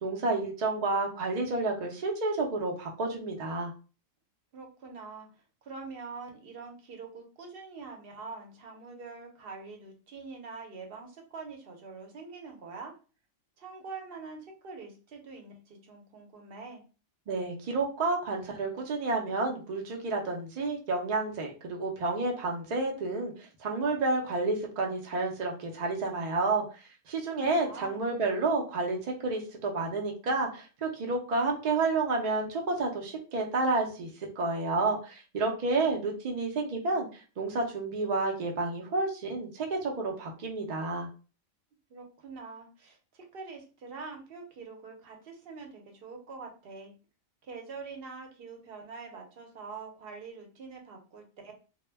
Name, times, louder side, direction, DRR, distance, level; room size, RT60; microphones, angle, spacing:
voice 1, 0.0-3.7 17.3-34.1 34.4-41.1, right 3 dB, 80° right, 1 dB, 0.3 m, -30 dB
voice 2, 4.5-5.3 5.6-12.9 13.6-16.9 27.4-28.1 41.9-46.9 47.4-51.5, right 4 dB, 55° right, 2 dB, 0.7 m, -44 dB
2.1 x 2.1 x 3.2 m, 0.35 s
omnidirectional pair, 1.4 m